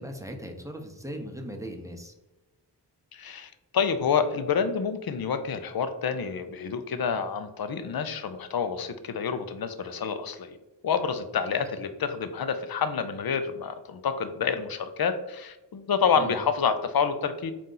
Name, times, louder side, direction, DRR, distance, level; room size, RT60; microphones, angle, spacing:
voice 1, 0.0-2.1 11.5-11.6 16.1-16.3, equal, 5° right, 2 dB, 0.7 m, -38 dB
voice 2, 3.1-10.6 10.8-17.5, left 6 dB, 55° left, 10 dB, 0.5 m, -28 dB
4.2 x 2.5 x 3.8 m, 1.0 s
cardioid pair, 45°, 43 cm